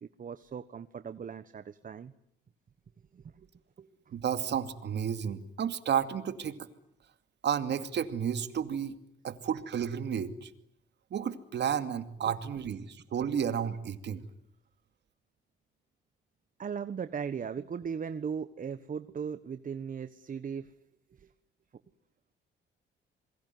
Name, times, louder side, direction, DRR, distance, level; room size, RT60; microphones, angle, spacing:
voice 1, 0.0-2.1 3.1-3.5 3.8-3.9 16.6-20.7 21.1-21.3, right 6 dB, 45° right, 12 dB, 1.3 m, -38 dB
voice 2, 4.1-6.6 7.4-9.0 9.2-10.5 11.1-14.2, right 8 dB, 60° right, 10 dB, 2.5 m, -32 dB
28.0 x 22.5 x 9.5 m, 0.74 s
cardioid pair, 90°, 20 cm